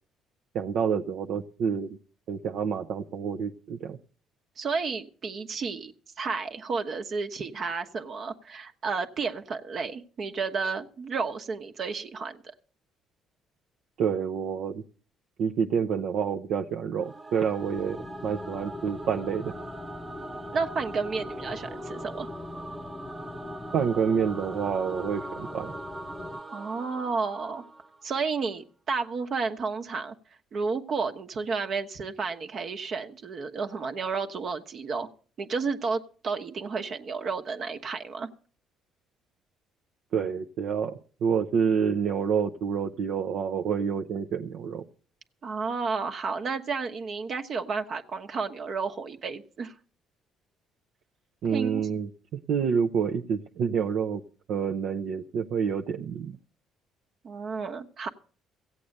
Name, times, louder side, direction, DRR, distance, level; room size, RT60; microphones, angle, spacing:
voice 1, 0.5-1.9 2.3-4.0 14.0-14.8 15.4-19.5 23.7-25.7 40.1-44.8 51.4-52.1 52.5-54.2 54.5-56.4, right 7 dB, 70° right, 3 dB, 0.7 m, -28 dB
voice 2, 4.6-5.9 6.2-12.4 20.5-22.3 26.5-27.6 28.0-30.1 30.5-35.1 35.4-38.3 45.4-49.7 51.5-51.8 57.2-58.1, right 4 dB, 55° right, 6 dB, 1.2 m, -31 dB
Singing / Musical instrument, 17.0-28.3, right 3 dB, 35° right, 1.2 m, -42 dB
sound 1, 17.6-26.4, left 3 dB, 30° left, 0.7 m, -41 dB
15.5 x 8.5 x 6.6 m, 0.43 s
supercardioid pair, 70°, 0 cm